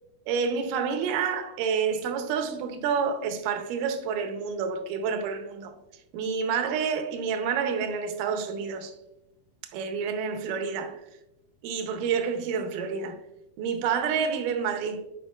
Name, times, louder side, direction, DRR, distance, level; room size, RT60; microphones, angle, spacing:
voice 1, 0.3-5.7 6.1-9.0 9.7-11.0 11.6-13.2 13.6-15.0, right 6 dB, 75° right, 2.0 m, -28 dB
10.0 x 4.7 x 2.3 m
omnidirectional pair, 4.3 m